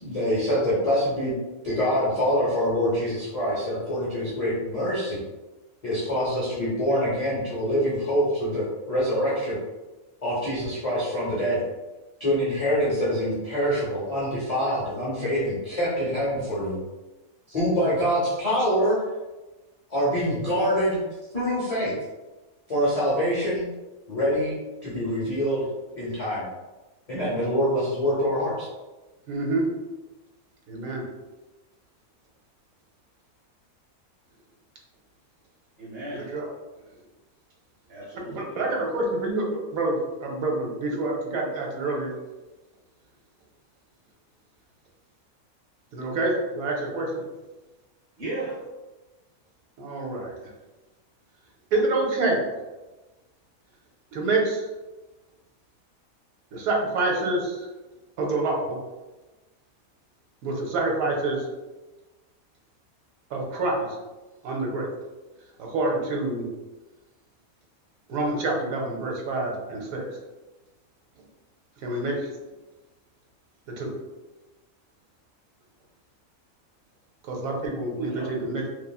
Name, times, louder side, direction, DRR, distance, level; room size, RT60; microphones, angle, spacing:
voice 1, 0.0-1.3 1.6-5.2 5.8-9.6 10.2-11.6 12.2-16.8 17.5-19.0 19.9-21.0 21.3-21.9 22.7-23.6 24.1-25.6 26.0-26.5 27.1-28.7, equal, 35° left, -8 dB, 0.6 m, -25 dB
voice 2, 29.3-29.7 30.7-31.0 36.3-36.5 38.3-40.0 40.2-42.1 45.9-47.1 49.8-50.3 51.7-52.4 54.1-54.6 56.5-57.7 58.2-58.8 60.4-61.4 63.3-63.9 64.4-64.9 65.6-66.5 68.1-70.1 71.8-72.2 73.7-73.9 77.2-78.7, right 2 dB, 75° right, 0 dB, 1.1 m, -27 dB
voice 3, 35.8-36.3 37.9-38.7 48.2-48.7 78.0-78.3, right 3 dB, 50° right, -8 dB, 1.0 m, -35 dB
3.1 x 2.5 x 2.3 m, 1.1 s
omnidirectional pair, 1.5 m